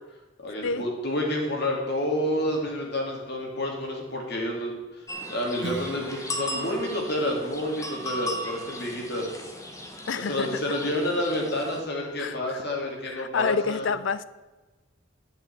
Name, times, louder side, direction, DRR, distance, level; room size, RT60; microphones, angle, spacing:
voice 1, 0.4-4.7 5.3-9.3 10.3-13.9, left 1 dB, 55° left, 0 dB, 2.6 m, -29 dB
sound 1, 5.1-11.8, left 1 dB, 15° left, 0.9 m, -37 dB
Acoustic guitar / Strum, 5.6-9.9, right 2 dB, 55° right, 1.3 m, -43 dB
voice 2, 10.1-10.6 12.2-12.6 13.0-14.2, left 5 dB, 70° left, 16 dB, 0.5 m, -28 dB
9.5 x 5.7 x 8.2 m, 1.2 s
head